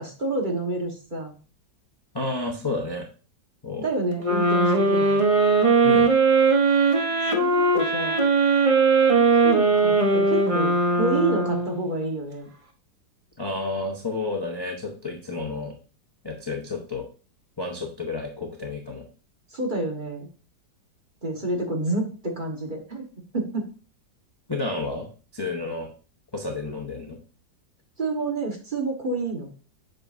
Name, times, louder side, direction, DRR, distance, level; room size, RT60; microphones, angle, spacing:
voice 1, 0.0-1.3 3.8-5.2 7.3-8.2 9.1-12.5 19.5-20.3 21.2-23.0 23.3-23.7 28.0-29.5, right 2 dB, 30° right, 1 dB, 1.2 m, -29 dB
voice 2, 2.1-3.1 3.6-3.9 5.8-6.1 13.4-15.8 16.2-17.1 17.6-19.0 24.5-25.9 26.3-27.2, left 3 dB, 25° left, 1 dB, 0.5 m, -31 dB
sound 1, 4.2-11.9, right 3 dB, 50° right, 0.4 m, -20 dB
7.7 x 6.0 x 2.5 m, 0.37 s
omnidirectional pair, 1.9 m